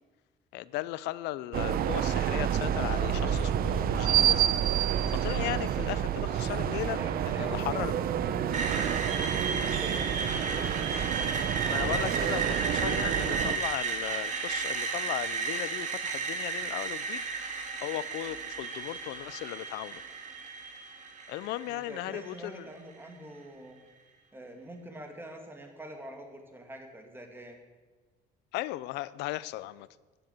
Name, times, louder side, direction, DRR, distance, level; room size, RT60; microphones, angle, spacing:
voice 1, 0.5-4.9 5.2-7.0 7.3-7.9 11.7-20.0 21.3-22.6 28.5-29.9, left 16 dB, 90° left, 19 dB, 0.5 m, -37 dB
sound 1, 1.5-13.6, right 10 dB, 60° right, 0.8 m, -29 dB
voice 2, 6.9-8.8 9.1-11.1 21.7-23.8 24.3-27.6, right 1 dB, 15° right, 3 dB, 2.5 m, -46 dB
Screech, 8.5-22.5, right 5 dB, 45° right, 2.1 m, -34 dB
10.5 x 10.5 x 7.8 m, 1.3 s
cardioid pair, 110°, 17 cm